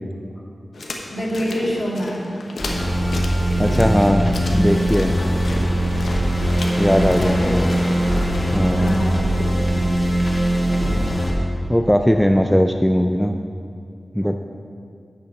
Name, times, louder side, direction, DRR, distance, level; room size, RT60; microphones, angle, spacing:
sound 1, 0.7-9.5, left 2 dB, 80° left, 1.0 m, -34 dB
voice 1, 1.1-2.3 7.2-7.5 8.8-9.2, equal, 50° left, -3 dB, 2.0 m, -25 dB
sound 2, 2.6-11.3, right 1 dB, 35° left, 2.1 m, -20 dB
voice 2, 3.6-5.1 6.8-7.7 8.5-9.0 11.7-13.4 14.1-14.4, equal, 5° left, 5 dB, 0.4 m, -19 dB
8.3 x 6.8 x 5.8 m, 2.3 s
cardioid pair, 60°, 0 cm